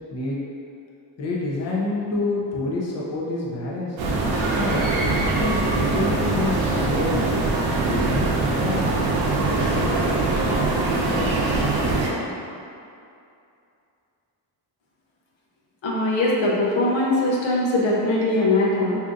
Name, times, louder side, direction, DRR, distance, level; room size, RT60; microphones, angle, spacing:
voice 1, 1.2-4.0 4.5-4.9 5.4-7.2 7.7-8.8 9.1-9.2, left 2 dB, 35° left, -5 dB, 0.6 m, -27 dB
sound 1, 4.0-12.1, right 2 dB, 85° right, 0.7 m, -22 dB
voice 2, 15.8-19.0, left 2 dB, 80° left, -5 dB, 0.8 m, -21 dB
2.7 x 2.4 x 3.7 m, 2.5 s
cardioid pair, 110°, 45 cm